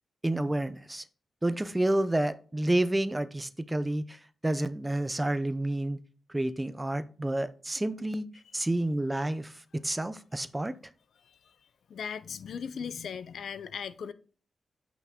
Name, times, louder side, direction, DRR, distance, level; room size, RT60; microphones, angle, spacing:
voice 1, 0.2-1.0 1.4-4.2 4.4-6.0 6.3-8.3 8.5-10.7, right 1 dB, 10° right, 0.5 m, -29 dB
voice 2, 11.9-14.1, left 7 dB, 80° left, 0.5 m, -38 dB
8.0 x 5.8 x 3.6 m
wide cardioid pair, 140°, 0 cm